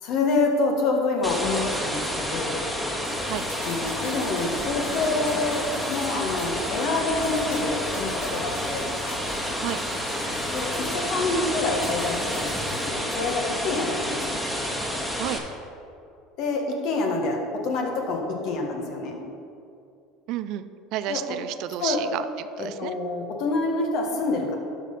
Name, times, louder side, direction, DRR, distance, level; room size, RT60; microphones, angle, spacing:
voice 1, 0.0-2.5 3.6-8.9 10.5-14.4 16.4-19.2 21.1-21.2 21.8-22.0 22.6-24.6, left 3 dB, 60° left, 1 dB, 1.5 m, -27 dB
sound 1, 1.2-15.4, equal, 5° left, 1.4 m, -29 dB
sound 2, 3.0-6.9 7.2-11.3 11.7-13.0 13.3-13.4, left 3 dB, 90° left, 1.7 m, -42 dB
voice 2, 20.3-20.6 20.9-22.9, right 13 dB, 60° right, 12 dB, 0.4 m, -31 dB
11.5 x 4.1 x 5.4 m, 2.6 s
hypercardioid pair, 75°, 0 cm